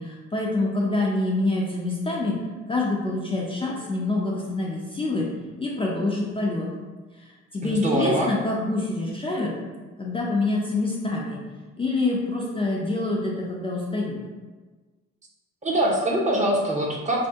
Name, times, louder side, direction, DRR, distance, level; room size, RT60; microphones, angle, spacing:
voice 1, 0.0-2.4 2.7-5.3 5.6-6.7 7.2-9.5 10.0-11.4 11.8-14.2, left 2 dB, 20° left, -3 dB, 0.5 m, -26 dB
voice 2, 7.6-8.3 15.6-17.3, right 1 dB, 25° right, -2 dB, 0.7 m, -23 dB
2.7 x 2.6 x 3.5 m, 1.3 s
cardioid pair, 90°, 30 cm